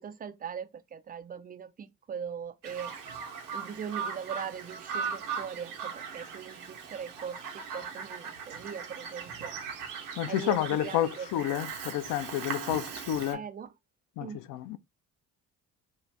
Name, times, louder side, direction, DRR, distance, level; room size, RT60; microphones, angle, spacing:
voice 1, 0.0-3.0 3.5-7.4 7.7-9.5 10.3-11.3 13.3-13.7 14.2-14.4, right 7 dB, 20° right, 0.3 m, -40 dB
Bird vocalization bird call bird song, 2.6-13.3, right 6 dB, 80° right, 0.9 m, -39 dB
voice 2, 10.2-13.4 14.2-14.8, left 12 dB, 50° left, 0.4 m, -30 dB
2.7 x 2.5 x 3.2 m
hypercardioid pair, 50°, 46 cm